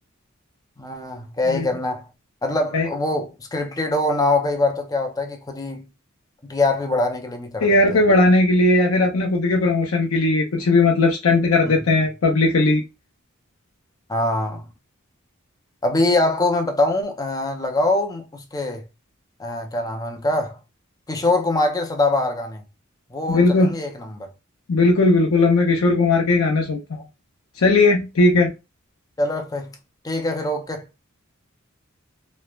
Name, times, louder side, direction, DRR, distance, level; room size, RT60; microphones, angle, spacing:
voice 1, 0.8-2.1 2.4-5.8 6.4-8.0 14.1-14.6 15.8-18.8 19.4-20.6 21.1-22.6 23.1-24.3 29.2-29.7 30.0-30.8, left 2 dB, 20° left, 0.5 m, -23 dB
voice 2, 7.6-12.8 23.3-23.7 24.7-27.0 27.6-28.5, left 2 dB, 90° left, 0.6 m, -17 dB
3.1 x 2.1 x 2.3 m
head